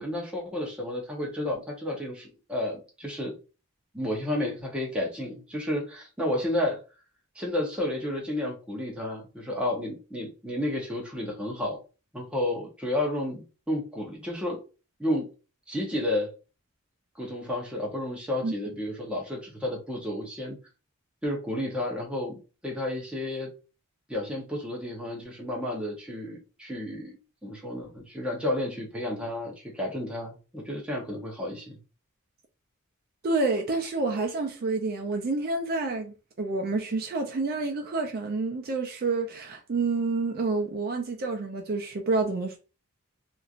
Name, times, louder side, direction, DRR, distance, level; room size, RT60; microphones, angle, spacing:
voice 1, 0.0-3.3 3.9-6.8 7.4-11.8 12.1-14.6 15.0-15.3 15.7-16.3 17.2-20.6 21.2-23.5 24.1-27.1 27.4-31.8, left 1 dB, 5° right, 0.8 m, -31 dB
voice 2, 33.2-42.6, right 3 dB, 45° right, 0.4 m, -28 dB
3.0 x 2.5 x 2.4 m
head